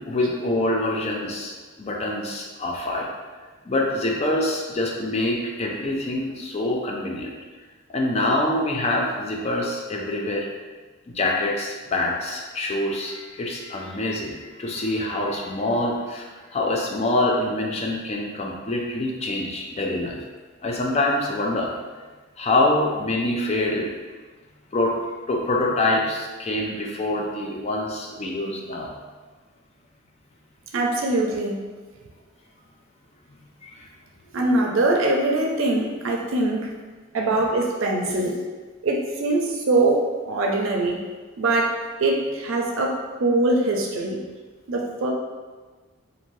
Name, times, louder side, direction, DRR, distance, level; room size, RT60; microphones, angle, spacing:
voice 1, 0.0-1.5 1.8-3.1 3.7-7.3 7.9-10.5 11.1-20.2 20.6-21.8 22.4-24.0 24.7-25.0 25.3-28.9 33.6-33.8, left 1 dB, 30° left, -1 dB, 0.4 m, -25 dB
voice 2, 30.7-31.6 34.3-36.7 37.1-38.4 38.8-41.0 41.4-44.2 44.7-45.1, right 2 dB, 80° right, 1 dB, 0.5 m, -23 dB
2.6 x 2.6 x 3.1 m, 1.4 s
head